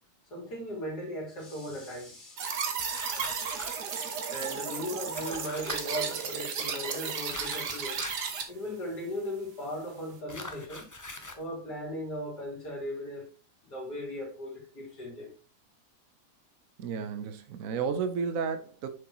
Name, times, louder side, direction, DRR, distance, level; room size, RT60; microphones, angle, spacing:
voice 1, 0.3-2.4 4.3-8.0 8.5-10.9 11.4-13.3 13.6-15.3, equal, 75° left, 3.6 m, -37 dB
sound 1, 2.4-8.4, right 6 dB, 80° right, 1.8 m, -34 dB
sound 2, 2.8-3.9 5.1-5.8 7.3-8.4 10.3-11.4, left 2 dB, 15° left, 0.7 m, -42 dB
voice 2, 16.8-18.9, right 6 dB, 60° right, 1.1 m, -32 dB
7.8 x 6.4 x 3.0 m
omnidirectional pair, 1.8 m